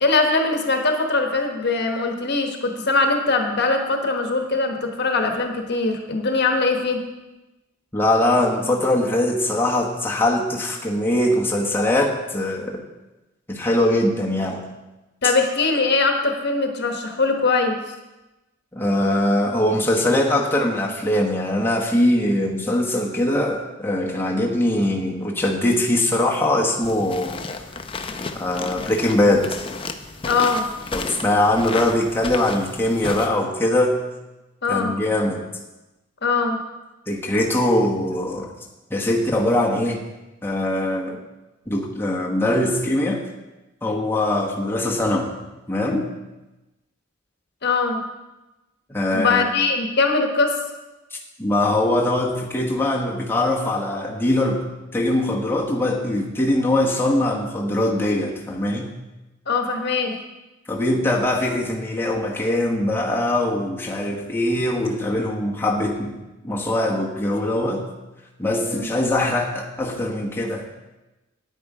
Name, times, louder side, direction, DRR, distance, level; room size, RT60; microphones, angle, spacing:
voice 1, 0.0-7.0 15.2-17.8 30.2-30.7 34.6-34.9 36.2-36.6 47.6-48.0 49.1-50.5 59.5-60.2 68.6-68.9, left 3 dB, 55° left, 4 dB, 1.2 m, -21 dB
voice 2, 7.9-12.8 13.5-14.6 18.7-27.4 28.3-29.7 30.9-34.1 34.7-35.4 37.1-38.5 38.9-40.0 40.4-41.2 41.7-43.2 43.8-45.3 45.7-46.1 48.9-49.4 51.4-59.0 60.7-67.9 68.4-70.7, left 1 dB, 10° left, -2 dB, 1.2 m, -22 dB
sound 1, 26.8-33.3, left 4 dB, 25° left, 0.6 m, -33 dB
9.4 x 9.4 x 4.8 m, 1.0 s
head